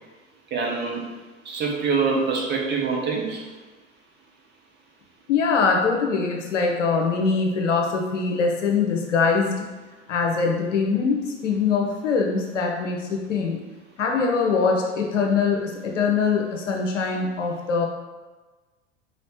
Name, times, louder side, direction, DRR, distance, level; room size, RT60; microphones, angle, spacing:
voice 1, 0.5-1.1 1.4-3.4, right 4 dB, 30° right, -1 dB, 1.0 m, -25 dB
voice 2, 5.3-9.6 10.1-13.6 14.0-17.9, left 5 dB, 75° left, 1 dB, 0.9 m, -23 dB
4.6 x 3.1 x 3.1 m, 1.2 s
figure-of-eight pair, 85°, 37 cm